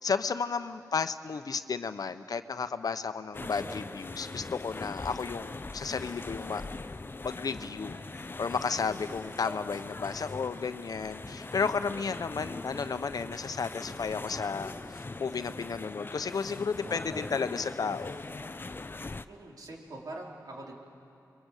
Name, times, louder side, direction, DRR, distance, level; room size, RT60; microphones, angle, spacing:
voice 1, 0.0-6.6 7.2-18.2, left 5 dB, 65° left, 10 dB, 0.9 m, -33 dB
sound 1, 3.3-19.3, left 3 dB, 30° left, 0.7 m, -41 dB
voice 2, 3.4-3.8 7.6-8.0 11.3-11.6 16.8-17.3 19.3-20.7, right 2 dB, 65° right, -2 dB, 4.6 m, -45 dB
29.0 x 23.0 x 8.3 m, 2.6 s
wide cardioid pair, 80°, 7 cm